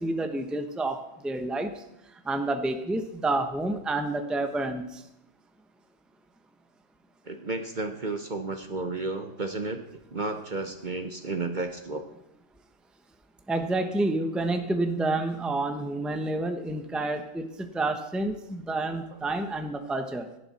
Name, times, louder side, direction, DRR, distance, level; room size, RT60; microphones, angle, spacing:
voice 1, 0.0-1.8 2.2-5.0 13.5-20.3, right 2 dB, ahead, 6 dB, 0.9 m, -29 dB
voice 2, 7.2-9.8 10.1-12.1, right 3 dB, 40° right, 7 dB, 1.0 m, -32 dB
17.0 x 11.0 x 4.2 m, 0.87 s
omnidirectional pair, 1.4 m